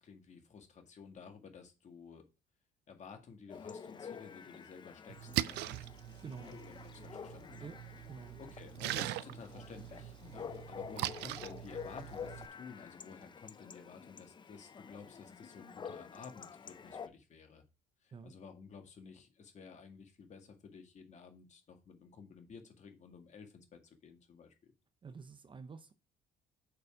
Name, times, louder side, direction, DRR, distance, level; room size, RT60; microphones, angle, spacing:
voice 1, 0.0-2.2 2.9-5.9 6.5-7.7 8.4-17.6 18.0-24.7, left 5 dB, 45° left, 1.9 m, -53 dB
Chatter / Bark / Livestock farm animals working animals, 3.5-17.1, left 6 dB, 25° left, 0.6 m, -49 dB
Splash splatter, 5.1-12.5, right 16 dB, 80° right, 0.4 m, -41 dB
voice 2, 6.2-6.5 7.6-7.8 8.1-8.4 18.1-18.3 25.0-25.9, right 5 dB, 30° right, 0.7 m, -48 dB
6.7 x 4.2 x 5.0 m
cardioid pair, 110°, 17 cm